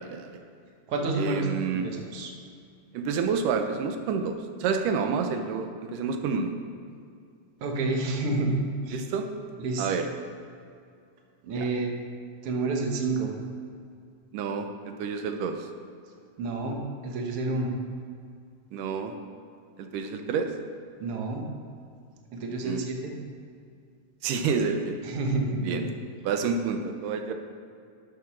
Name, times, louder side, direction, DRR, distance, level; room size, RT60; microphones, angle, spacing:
voice 1, 0.0-0.4 1.1-1.9 2.9-6.5 8.9-9.3 9.8-10.1 11.6-11.7 14.3-15.7 18.7-19.1 19.8-20.5 22.6-22.8 24.2-25.0 25.6-25.9 26.2-27.3, right 5 dB, 90° right, 6 dB, 2.4 m, -29 dB
voice 2, 0.9-1.5 1.8-2.3 7.6-9.0 9.6-10.0 11.4-11.9 12.4-13.3 16.4-17.7 21.0-21.4 22.3-23.2 25.0-25.8, right 2 dB, 55° right, 1 dB, 2.0 m, -29 dB
11.5 x 6.7 x 6.0 m, 2.4 s
omnidirectional pair, 3.6 m